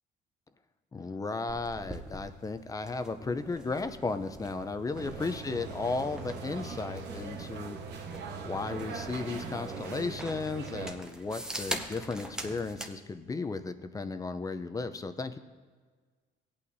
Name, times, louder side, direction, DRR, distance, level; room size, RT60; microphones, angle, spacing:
voice 1, 0.9-7.8 8.4-15.4, left 3 dB, 20° left, 10 dB, 0.6 m, -35 dB
sound 1, 1.5-12.9, right 1 dB, 5° right, 0.9 m, -43 dB
sound 2, 4.9-10.9, right 5 dB, 85° right, 1.2 m, -41 dB
17.0 x 8.5 x 2.7 m, 1.5 s
cardioid pair, 110°, 17 cm